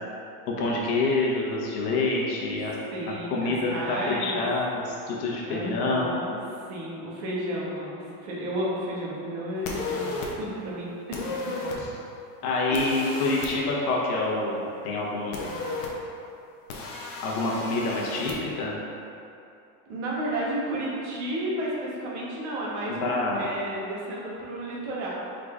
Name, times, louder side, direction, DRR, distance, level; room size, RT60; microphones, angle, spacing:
voice 1, 0.5-2.7 3.3-6.2 11.8-11.9 12.4-15.5 17.2-18.7 22.9-23.4, left 2 dB, 90° left, -3 dB, 1.1 m, -27 dB
voice 2, 2.9-4.4 5.4-6.4 6.7-11.2 12.7-13.0 19.9-25.1, right 1 dB, 50° right, -5 dB, 1.0 m, -32 dB
sound 1, 9.6-10.3 11.1-11.8 12.7-13.5 15.3-15.9 16.7-18.3, left 3 dB, 60° left, 0.8 m, -34 dB
4.8 x 3.8 x 2.4 m, 2.7 s
supercardioid pair, 175°, 44 cm